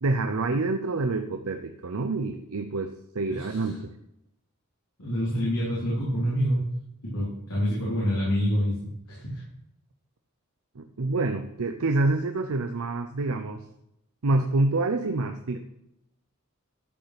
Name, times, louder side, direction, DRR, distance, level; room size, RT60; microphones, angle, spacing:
voice 1, 0.0-3.9 10.8-13.6 14.2-15.6, right 2 dB, 80° right, 6 dB, 0.7 m, -27 dB
voice 2, 3.3-3.6 5.0-6.7 7.0-8.8 9.1-9.4, equal, 90° left, -8 dB, 3.6 m, -27 dB
12.5 x 5.5 x 6.0 m, 0.83 s
head